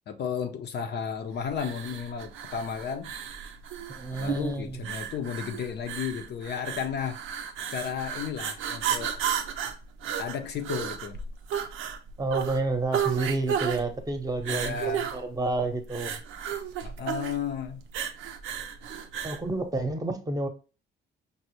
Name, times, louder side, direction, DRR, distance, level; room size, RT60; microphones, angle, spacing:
voice 1, 0.1-3.1 4.1-7.2 7.7-9.2 10.2-11.2 14.4-15.1 16.8-17.8, left 7 dB, 55° left, 0.5 m, -33 dB
sound 1, 1.5-19.5, right 8 dB, 90° right, 0.5 m, -33 dB
voice 2, 3.9-4.8 12.2-16.1 19.2-20.5, right 2 dB, 20° right, 0.8 m, -30 dB
5.3 x 2.0 x 2.9 m
cardioid pair, 90°, 20 cm